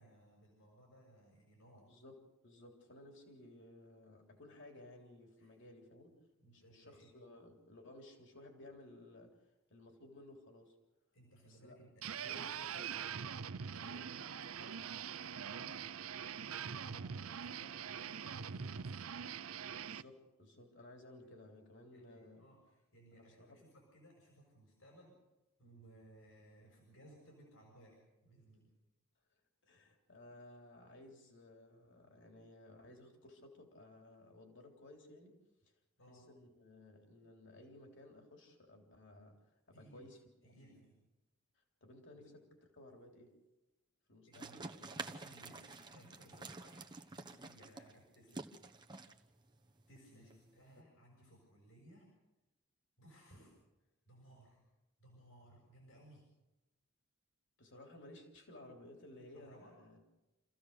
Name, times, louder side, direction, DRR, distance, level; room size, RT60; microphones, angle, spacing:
voice 1, 0.0-1.9 5.4-5.5 6.4-7.1 11.1-12.7 13.6-16.1 16.3-19.1 21.9-25.2 25.6-28.8 36.0-36.3 39.7-40.1 40.4-41.1 42.2-42.3 44.3-48.5 49.9-52.1 53.0-53.5 54.0-54.6 55.0-56.3 59.3-59.7, right 1 dB, 85° left, -2 dB, 6.4 m, -61 dB
voice 2, 1.9-6.2 6.5-9.4 9.7-10.8 11.4-11.8 12.1-13.2 13.8-14.1 19.8-22.4 23.1-23.6 29.6-35.4 36.1-40.2 41.5-43.4 44.1-44.8 50.1-50.4 50.7-50.9 57.6-60.0, left 1 dB, 60° left, 2 dB, 3.4 m, -57 dB
sound 1, 12.0-20.0, right 7 dB, 85° right, 0.6 m, -43 dB
sound 2, 44.3-50.8, right 3 dB, 20° right, 1.1 m, -49 dB
28.0 x 15.5 x 6.7 m, 1.0 s
head